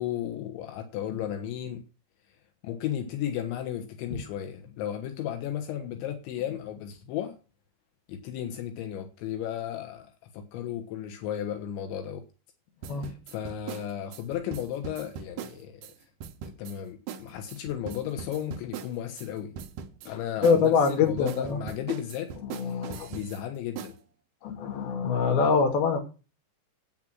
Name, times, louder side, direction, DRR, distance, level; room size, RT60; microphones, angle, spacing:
voice 1, 0.0-1.8 2.6-7.3 8.1-12.2 13.0-15.8 16.5-19.5 20.1-22.3 22.6-22.8 23.1-24.0, left 10 dB, 80° left, 3.6 m, -34 dB
sound 1, 12.8-15.9 16.2-16.8 17.1-17.2 17.5-19.3 19.6-20.1 20.4-23.4 23.8-23.9, right 8 dB, 85° right, 1.9 m, -40 dB
voice 2, 20.4-21.6 22.4-23.1 24.4-26.0, left 5 dB, 60° left, 3.8 m, -24 dB
10.0 x 9.0 x 6.2 m
omnidirectional pair, 5.2 m